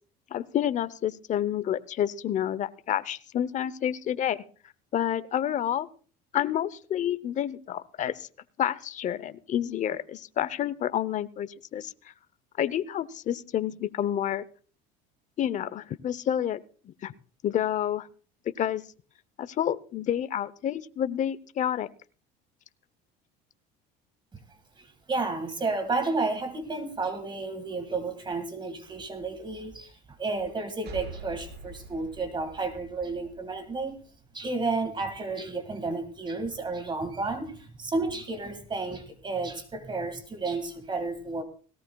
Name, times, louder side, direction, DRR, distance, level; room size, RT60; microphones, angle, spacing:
voice 1, 0.3-4.4 4.9-5.9 6.3-8.3 8.6-12.1 12.6-14.4 15.4-16.6 16.8-17.1 17.4-18.1 18.6-18.8 19.4-21.9, left 10 dB, 40° left, 15 dB, 0.7 m, -29 dB
voice 2, 24.8-34.0 34.3-41.4, right 3 dB, 25° right, 8 dB, 1.9 m, -32 dB
sound 1, 30.8-34.3, right 2 dB, 55° right, 5.1 m, -45 dB
18.0 x 17.5 x 2.3 m, 0.42 s
supercardioid pair, 115°, 20 cm